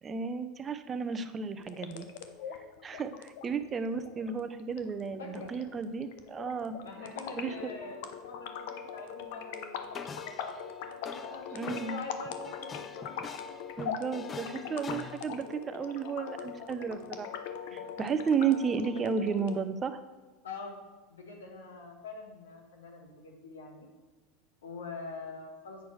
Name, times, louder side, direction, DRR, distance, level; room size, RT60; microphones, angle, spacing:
voice 1, 0.0-2.1 2.8-6.8 7.4-7.7 11.5-12.0 13.8-17.3 17.7-20.0, right 6 dB, 30° right, 10 dB, 0.6 m, -33 dB
sound 1, 1.6-19.6, left 7 dB, 70° left, 0.6 m, -42 dB
voice 2, 5.2-5.5 6.8-13.2 13.5-13.6 14.5-14.8 17.8-17.9 20.4-20.8 21.1-23.9 24.6-25.8, left 3 dB, 90° left, 2 dB, 1.4 m, -45 dB
sound 2, 9.9-10.7 11.1-15.2, left 6 dB, 30° left, 0.4 m, -45 dB
8.1 x 6.1 x 3.3 m, 1.3 s
hypercardioid pair, 100°, 0 cm